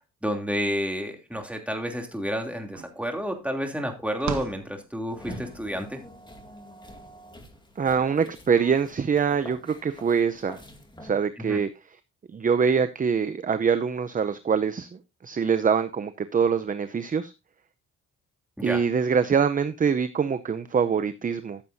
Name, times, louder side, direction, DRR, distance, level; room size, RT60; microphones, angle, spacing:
voice 1, 0.2-6.0 11.4-11.6 18.6-18.8, equal, 5° right, 2.9 m, -30 dB
sound 1, 2.1-2.2 2.4-5.5, right 7 dB, 65° right, 1.7 m, -38 dB
sound 2, 5.1-11.1, left 1 dB, 15° left, 2.2 m, -45 dB
voice 2, 7.8-10.6 11.0-11.7 12.3-14.9 15.2-17.3 18.6-21.6, right 6 dB, 25° right, 0.6 m, -24 dB
14.0 x 7.5 x 2.7 m
cardioid pair, 90°, 30 cm